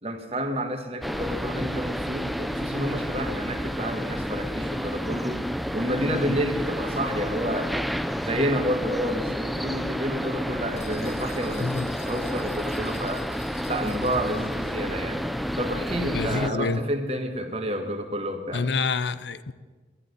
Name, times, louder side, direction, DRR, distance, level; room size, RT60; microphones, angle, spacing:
voice 1, 0.0-5.4 5.7-7.7 8.2-13.2 13.7-15.3 15.6-18.7, equal, 35° right, 1.6 m, -30 dB
sound 1, 1.0-16.5, equal, ahead, 0.5 m, -30 dB
voice 2, 6.1-6.4 11.6-11.9 16.1-16.8 18.5-19.5, left 4 dB, 80° left, 0.6 m, -27 dB
sound 2, 10.8-14.9, left 4 dB, 40° left, 1.8 m, -48 dB
12.0 x 11.0 x 9.5 m
head